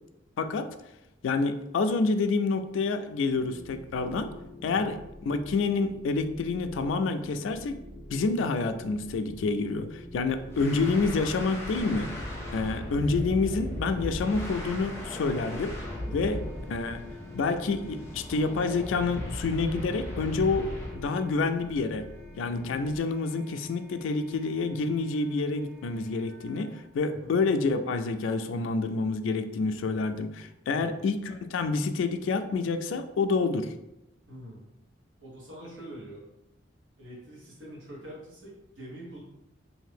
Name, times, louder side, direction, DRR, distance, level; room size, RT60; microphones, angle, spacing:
voice 1, 0.4-0.7 1.2-4.3 4.6-5.0 5.3-7.8 8.1-12.1 12.5-15.7 16.1-17.0 17.3-22.0 22.4-33.7, left 3 dB, 85° left, 9 dB, 0.3 m, -28 dB
sound 1, 3.2-23.0, left 1 dB, 55° right, 1.3 m, -47 dB
voice 2, 4.6-5.0 10.3-10.5 16.1-16.4 22.4-22.7 27.1-27.4 30.7-30.9 34.3-34.6 35.2-36.2 37.0-39.2, equal, 85° right, -5 dB, 1.4 m, -45 dB
sound 2, 10.5-21.1, left 1 dB, 15° left, 0.5 m, -37 dB
Wind instrument woodwind instrument, 13.8-26.8, equal, 40° right, 0.8 m, -57 dB
2.8 x 2.5 x 3.4 m, 0.90 s
head